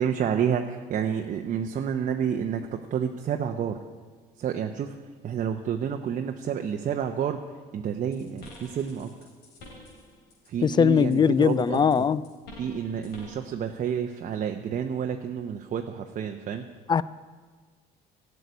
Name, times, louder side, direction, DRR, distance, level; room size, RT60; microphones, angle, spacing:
voice 1, 0.0-3.8 4.4-5.0 5.2-7.4 7.7-9.2 10.5-12.1 12.5-16.7, right 8 dB, 50° right, 0.7 m, -29 dB
sound 1, 8.1-10.7 11.0-13.5, left 1 dB, 75° left, 3.6 m, -48 dB
voice 2, 10.6-12.2 16.9-17.0, left 6 dB, 25° left, 0.4 m, -20 dB
12.5 x 6.6 x 9.4 m
cardioid pair, 110°, 17 cm